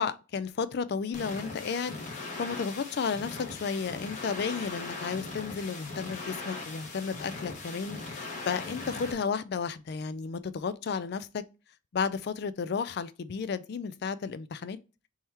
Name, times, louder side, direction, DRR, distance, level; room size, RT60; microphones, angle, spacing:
voice 1, 0.0-2.0 2.4-11.4 11.9-14.8, left 5 dB, 55° left, 0.4 m, -33 dB
sound 1, 1.1-9.1, left 3 dB, 40° left, 1.1 m, -40 dB
3.5 x 3.0 x 4.2 m
head